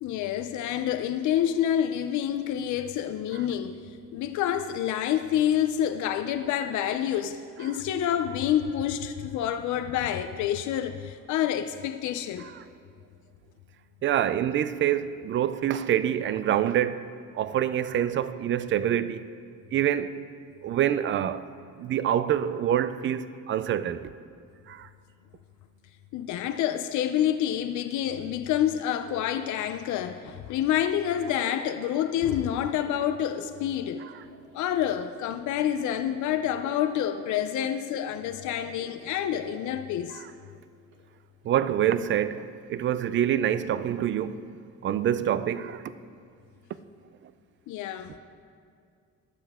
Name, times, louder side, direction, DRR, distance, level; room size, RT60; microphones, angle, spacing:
voice 1, 0.0-3.9 4.1-12.5 26.1-34.0 34.5-40.2 47.7-48.2, left 10 dB, 70° left, 0.6 m, -28 dB
voice 2, 14.0-17.1 17.3-19.2 19.7-20.2 20.6-21.4 21.8-24.0 24.7-24.9 34.0-34.1 40.1-40.3 41.4-44.4 44.8-45.8, right 10 dB, 40° right, 0.4 m, -26 dB
Telephone, 29.0-29.6 30.1-30.4 30.7-31.6 32.1-37.6 37.9-39.0 39.3-39.7 40.0-40.1 40.4-41.0, right 1 dB, 70° right, 2.9 m, -47 dB
15.0 x 12.0 x 3.6 m
cardioid pair, 165°, 31 cm